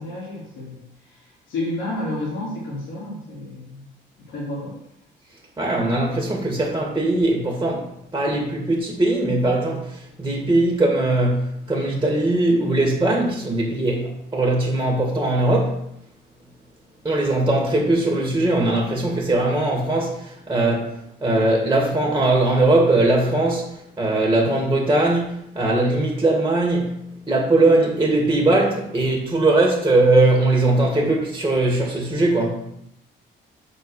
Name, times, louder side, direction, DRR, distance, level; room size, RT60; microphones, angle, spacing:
voice 1, 0.0-3.8 4.3-4.8, left 1 dB, 80° left, 3.2 m, -31 dB
voice 2, 5.6-15.8 17.0-27.0 27.3-32.7, right 2 dB, 15° right, 2.2 m, -20 dB
6.6 x 4.7 x 6.6 m
cardioid pair, 90°, 20 cm